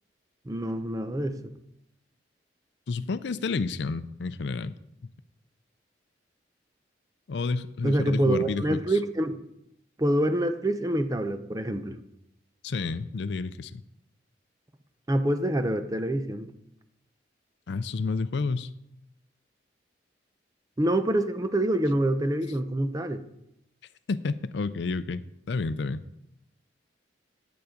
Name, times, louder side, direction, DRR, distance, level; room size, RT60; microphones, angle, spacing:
voice 1, 0.5-1.5 7.8-9.4 10.0-12.0 15.1-16.5 20.8-23.2, right 1 dB, 20° right, 9 dB, 0.6 m, -26 dB
voice 2, 2.9-4.7 7.3-8.8 12.6-13.8 17.7-18.7 24.1-25.2 25.5-26.0, left 4 dB, 65° left, 14 dB, 0.5 m, -30 dB
9.3 x 7.1 x 5.1 m, 0.79 s
head